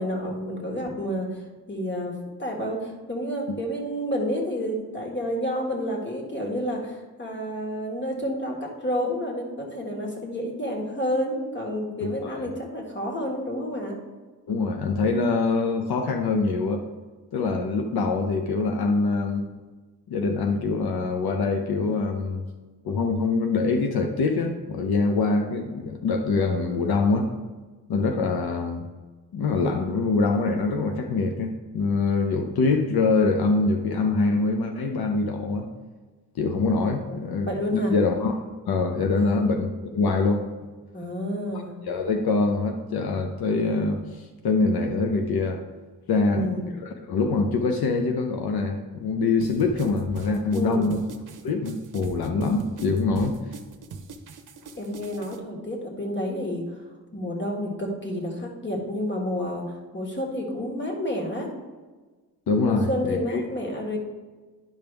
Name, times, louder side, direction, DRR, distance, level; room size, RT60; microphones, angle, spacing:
voice 1, 0.0-2.1 2.4-14.0 37.1-37.2 37.5-38.0 39.2-39.5 40.9-41.7 46.2-46.7 50.5-50.9 54.8-56.9 57.1-61.5 62.6-64.0, equal, 30° left, 0 dB, 1.8 m, -30 dB
voice 2, 12.0-12.5 14.5-16.9 17.3-19.5 20.1-22.4 22.8-27.4 27.9-28.9 29.3-35.7 36.4-38.3 38.7-40.5 41.9-45.6 46.1-51.0 51.4-53.4 62.5-63.4, left 3 dB, 75° left, 4 dB, 0.7 m, -24 dB
sound 1, 49.4-55.4, right 4 dB, 55° right, 0.8 m, -40 dB
10.5 x 5.2 x 3.4 m, 1.3 s
wide cardioid pair, 115°, 37 cm